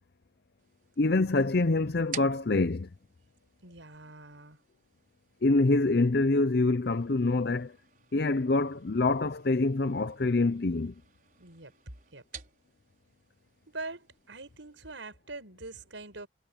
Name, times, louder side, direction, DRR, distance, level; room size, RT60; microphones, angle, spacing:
sound 1, 0.6-14.9, right 8 dB, 45° right, 5.8 m, -52 dB
voice 1, 1.0-2.9 5.4-7.8 8.1-10.9, left 2 dB, 55° left, 0.6 m, -25 dB
voice 2, 3.6-4.6 11.4-11.7 12.1-12.2 13.7-16.3, right 3 dB, 85° right, 5.8 m, -43 dB
head